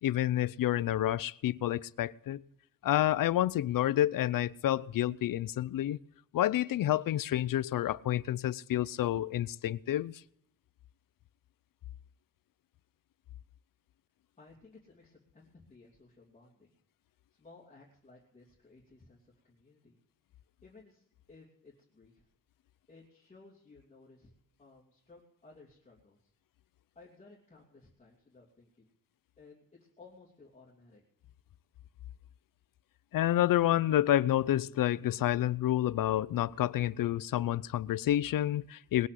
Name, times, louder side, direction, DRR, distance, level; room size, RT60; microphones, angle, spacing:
voice 1, 0.0-2.4 2.8-6.0 6.3-10.1 33.1-39.1, left 13 dB, 80° left, 0.6 m, -29 dB
voice 2, 14.4-16.7 17.3-20.0 20.6-22.3 22.9-24.3 24.6-26.3 26.9-28.9 29.4-31.0, left 3 dB, 20° left, 2.8 m, -58 dB
20.5 x 8.4 x 7.7 m
wide cardioid pair, 175°, 33 cm